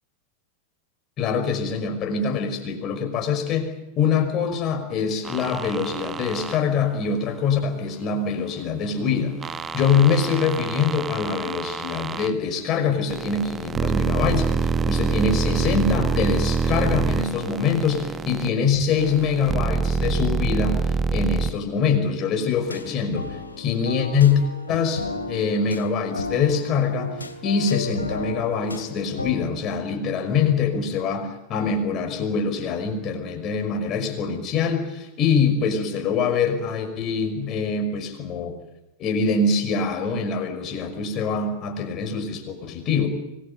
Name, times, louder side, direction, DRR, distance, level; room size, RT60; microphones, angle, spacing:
voice 1, 1.2-3.7 4.0-9.4 9.7-20.8 21.1-24.4 24.7-27.1 27.4-38.6 39.0-43.1, left 5 dB, 35° left, 6 dB, 5.6 m, -24 dB
sound 1, 5.2-6.6 9.4-12.3 13.1-18.5 19.0-21.5, right 5 dB, 20° right, 1.1 m, -26 dB
sound 2, 22.7-29.3, left 3 dB, 80° left, 2.6 m, -34 dB
25.5 x 21.0 x 9.3 m, 0.95 s
figure-of-eight pair, 90°, 0 cm